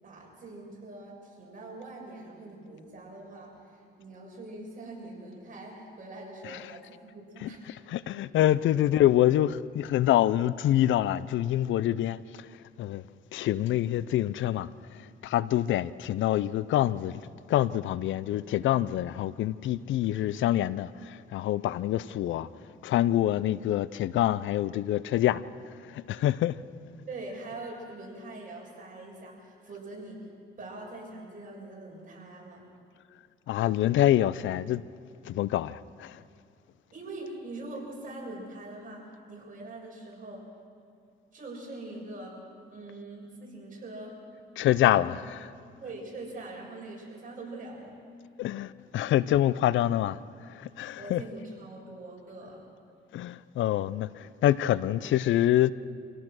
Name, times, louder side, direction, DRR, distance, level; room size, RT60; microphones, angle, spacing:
voice 1, 0.0-7.7 27.1-30.2 30.6-32.6 36.9-40.5 41.3-42.4 42.7-44.2 44.8-45.1 45.8-48.0 50.8-52.7, right 2 dB, 40° right, 6.7 m, -43 dB
voice 2, 7.9-12.5 12.8-13.0 13.3-14.7 15.2-17.2 17.5-22.5 22.8-25.4 25.8-26.6 33.5-34.8 35.2-36.2 44.6-45.2 48.4-50.2 50.5-51.2 53.1-55.7, left 13 dB, 75° left, 0.5 m, -26 dB
26.5 x 17.0 x 6.3 m
cardioid pair, 90°, 20 cm